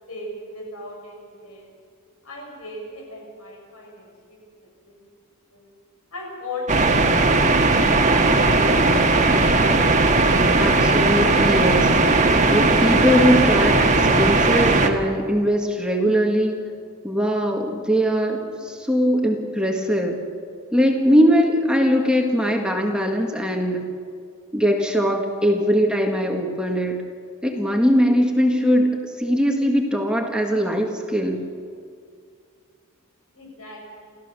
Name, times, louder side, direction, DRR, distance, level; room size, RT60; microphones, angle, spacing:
voice 1, 0.1-1.7 2.2-4.4 4.8-5.0 5.5-5.7 6.1-7.3 7.6-8.8 18.5-18.6 20.5-20.8 31.3-31.5 33.3-34.2, left 2 dB, 70° left, 0 dB, 7.1 m, -37 dB
sound 1, 6.7-14.9, right 3 dB, 35° right, 1.6 m, -17 dB
voice 2, 10.6-11.9 12.5-16.6 17.0-18.4 18.6-20.2 20.7-23.8 24.5-27.0 27.4-31.4, equal, 5° right, 1 dB, 1.7 m, -21 dB
29.5 x 14.5 x 6.9 m, 2.2 s
head